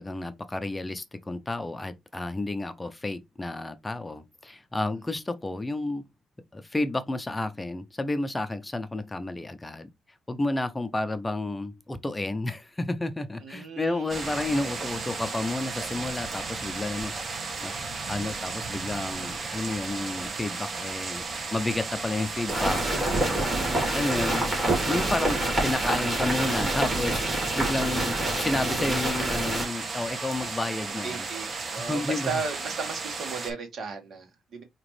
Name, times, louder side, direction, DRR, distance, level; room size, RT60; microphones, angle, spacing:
voice 1, 0.0-6.0 6.5-9.9 10.3-17.7 18.1-23.5 23.9-24.5 24.9-27.2 27.6-31.3 31.8-32.3, left 2 dB, 15° left, 0.5 m, -31 dB
voice 2, 13.4-14.3 14.6-14.8 27.8-27.9 31.0-34.6, right 5 dB, 60° right, 1.7 m, -36 dB
sound 1, 14.1-33.5, right 4 dB, 45° right, 1.4 m, -35 dB
sound 2, 22.5-29.7, right 1 dB, 20° right, 2.8 m, -27 dB
5.0 x 2.9 x 3.2 m
cardioid pair, 90°, 0 cm